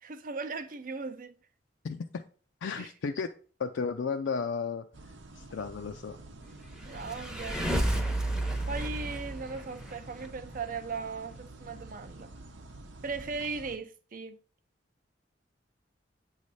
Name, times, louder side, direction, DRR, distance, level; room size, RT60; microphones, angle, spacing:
voice 1, 0.0-1.3 2.8-2.9 6.8-7.6 8.7-12.3 13.0-14.4, right 4 dB, 45° right, 0.6 m, -38 dB
voice 2, 1.8-2.2 2.6-3.3 3.6-4.8 5.4-6.2, left 5 dB, 80° left, 0.4 m, -33 dB
sound 1, 4.9-13.8, right 2 dB, 85° right, 0.8 m, -49 dB
sound 2, 6.7-10.3, right 1 dB, 5° right, 0.7 m, -31 dB
8.3 x 3.2 x 4.1 m
head